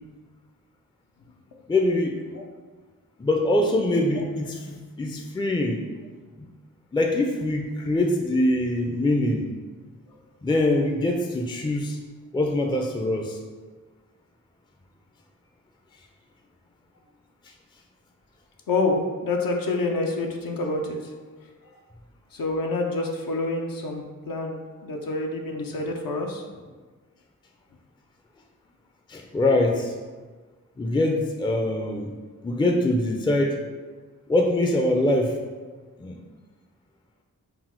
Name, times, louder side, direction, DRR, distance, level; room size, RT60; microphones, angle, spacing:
voice 1, 1.7-2.2 3.2-5.8 6.4-6.5 6.9-9.5 10.4-12.0 12.3-13.4 29.1-29.9 30.8-32.1 32.4-33.6 34.3-35.4 36.0-36.2, left 1 dB, 15° left, 2 dB, 0.4 m, -23 dB
voice 2, 18.7-21.1 22.3-26.4, left 2 dB, 70° left, 1 dB, 0.6 m, -27 dB
4.0 x 2.1 x 4.4 m, 1.4 s
cardioid pair, 45°, 35 cm